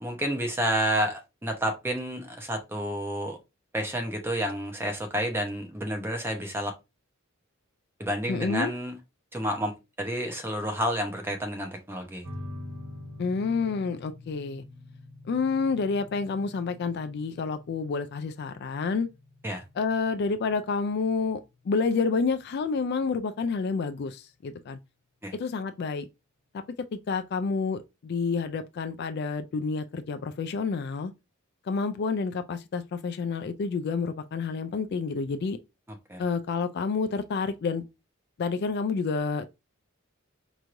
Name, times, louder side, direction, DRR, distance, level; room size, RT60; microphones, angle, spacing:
voice 1, 0.0-3.4 3.7-6.7 8.0-9.0 9.3-12.2 19.4-19.6 25.2-25.3 36.1-36.2, equal, 10° right, 0.8 m, -30 dB
voice 2, 8.3-8.7 13.2-14.6 15.3-19.1 19.8-24.8 25.3-26.1 26.5-26.6 26.9-31.1 31.7-35.6 36.2-37.8 38.4-39.4, left 4 dB, 50° left, 0.3 m, -29 dB
sound 1, 12.2-23.2, left 1 dB, 75° right, 1.3 m, -46 dB
4.5 x 3.0 x 2.5 m
head